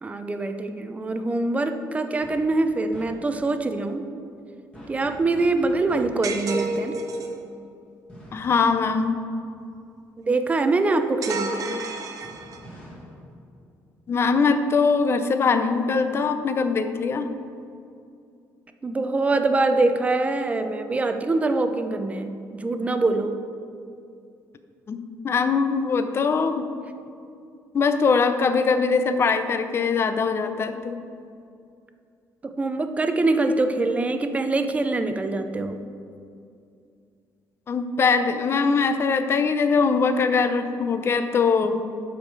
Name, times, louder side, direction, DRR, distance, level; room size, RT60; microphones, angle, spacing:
voice 1, 0.0-4.1 4.9-7.0 10.2-11.8 18.8-23.4 32.4-35.8, right 2 dB, 20° right, 8 dB, 0.5 m, -24 dB
sound 1, 2.2-2.6 2.9-3.5 4.7-6.4 8.1-9.9 12.2-14.3, equal, 15° left, 2.0 m, -46 dB
sound 2, 6.2-7.4 11.2-12.8, right 2 dB, 55° right, 0.9 m, -31 dB
voice 2, 8.3-9.2 14.1-17.3 24.9-26.7 27.7-31.0 37.7-41.8, left 5 dB, 35° left, 9 dB, 0.6 m, -22 dB
12.5 x 4.9 x 4.6 m, 2.4 s
cardioid pair, 135°, 7 cm